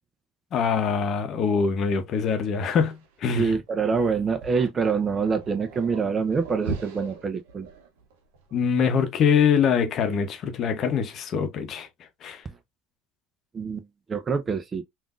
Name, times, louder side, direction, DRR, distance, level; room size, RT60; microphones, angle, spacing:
voice 1, 0.5-3.5 8.5-11.9 12.2-12.4, left 6 dB, 50° left, 0.7 m, -24 dB
sound 1, 2.8-8.6, right 4 dB, 80° right, 0.7 m, -39 dB
voice 2, 3.3-7.7 13.5-14.8, right 5 dB, 30° right, 0.6 m, -26 dB
3.5 x 2.5 x 2.4 m
hypercardioid pair, 80°, 0 cm